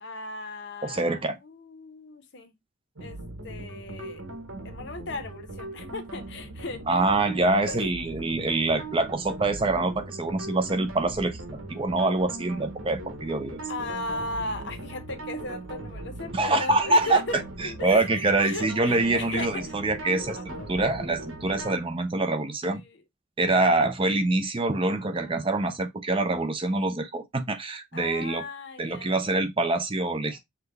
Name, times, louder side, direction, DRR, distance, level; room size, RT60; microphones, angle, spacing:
voice 1, 0.0-2.5 3.0-4.2 4.6-6.8 7.7-7.9 13.7-19.7 20.4-20.9 22.7-23.0 24.9-25.8 27.9-29.2 30.3-30.4, left 2 dB, 55° left, 0.8 m, -37 dB
voice 2, 0.8-1.4 6.9-13.6 16.3-17.2 17.6-22.8 23.4-28.4 28.8-30.4, right 2 dB, 25° right, 0.5 m, -25 dB
sound 1, 3.0-21.8, right 2 dB, 80° right, 1.2 m, -39 dB
5.8 x 2.2 x 3.3 m
head